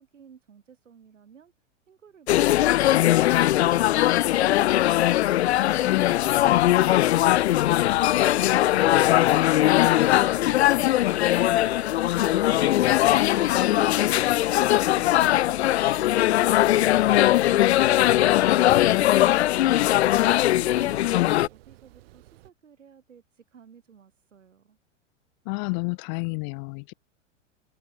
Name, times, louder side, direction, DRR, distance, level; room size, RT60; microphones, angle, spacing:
voice 1, 0.0-1.5 1.9-5.9 6.3-7.1 7.5-24.8, right 7 dB, 70° right, 6.5 m, -54 dB
sound 1, 2.3-21.5, left 14 dB, 60° left, 0.4 m, -20 dB
voice 2, 5.8-6.7 18.9-19.3 21.1-21.5 25.4-26.9, left 34 dB, 40° left, 1.3 m, -30 dB
sound 2, 8.5-22.5, right 18 dB, 50° right, 6.6 m, -53 dB
open air
figure-of-eight pair, 105°, 38 cm